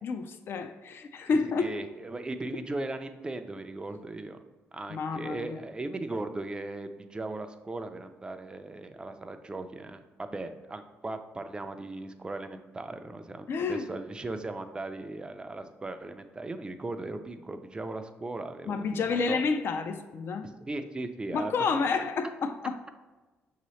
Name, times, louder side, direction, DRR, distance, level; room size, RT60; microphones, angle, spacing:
voice 1, 0.0-1.7 4.9-5.6 13.5-13.9 18.7-20.5 21.3-22.8, left 4 dB, 55° left, 7 dB, 0.3 m, -30 dB
voice 2, 1.2-4.4 4.7-19.4 20.4-21.8, right 2 dB, 20° right, 8 dB, 0.4 m, -38 dB
6.1 x 2.8 x 3.1 m, 1.2 s
cardioid pair, 90°, 5 cm